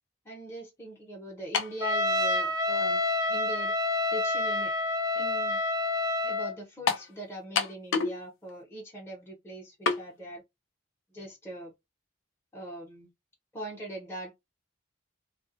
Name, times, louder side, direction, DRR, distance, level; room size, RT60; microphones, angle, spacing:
voice 1, 0.2-3.0 3.3-3.7 4.1-4.7 5.1-5.6 6.2-10.4 11.1-11.7 12.5-13.1 13.5-14.5, right 1 dB, 15° left, 0.9 m, -41 dB
sound 1, 1.5-1.8 2.7-2.8 6.9-7.1 7.6-8.2 8.5-8.6 9.9-10.0, left 5 dB, 75° left, 0.6 m, -27 dB
Trumpet, 1.8-6.5, left 2 dB, 20° right, 0.4 m, -28 dB
2.3 x 2.2 x 2.5 m
head